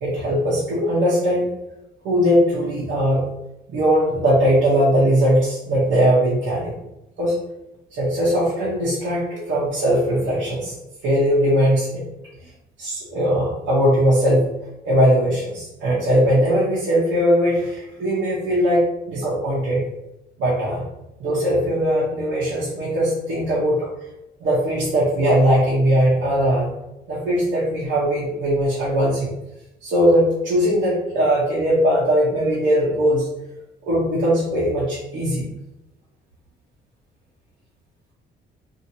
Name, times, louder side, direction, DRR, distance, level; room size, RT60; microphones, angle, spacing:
voice 1, 0.0-1.5 2.0-3.2 3.7-6.7 7.2-7.3 7.9-10.8 11.0-12.0 12.8-14.5 14.8-19.8 20.4-20.8 21.2-23.8 24.4-26.7 27.1-29.3 29.8-33.3 33.9-35.5, equal, 80° right, -8 dB, 1.0 m, -19 dB
2.9 x 2.7 x 2.8 m, 0.92 s
cardioid pair, 90°, 20 cm